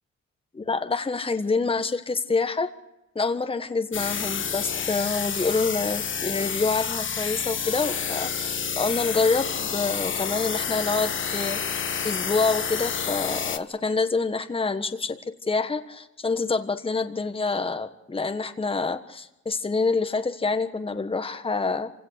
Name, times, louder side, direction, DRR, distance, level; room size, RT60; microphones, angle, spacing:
voice 1, 0.5-2.7 3.1-15.2 15.4-21.9, left 4 dB, 20° left, 8 dB, 1.3 m, -27 dB
sound 1, 3.9-13.6, left 7 dB, 40° left, 1.3 m, -29 dB
26.0 x 17.0 x 6.6 m, 0.98 s
cardioid pair, 90°, 30 cm